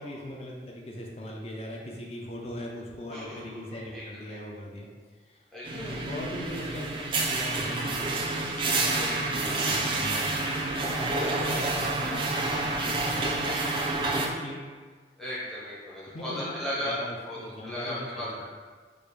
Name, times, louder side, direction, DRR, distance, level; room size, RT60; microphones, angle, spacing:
voice 1, 0.0-4.9 5.2-5.4 5.7-13.4 14.0-14.7 16.1-18.4, left 1 dB, 35° left, -1 dB, 0.5 m, -40 dB
voice 2, 3.1-4.4 5.5-6.1 9.0-9.5 10.1-10.3 11.2-11.7 15.2-18.4, left 1 dB, ahead, -10 dB, 0.8 m, -37 dB
sound 1, 5.6-14.3, right 2 dB, 30° right, 0.3 m, -28 dB
3.6 x 2.5 x 3.2 m, 1.5 s
head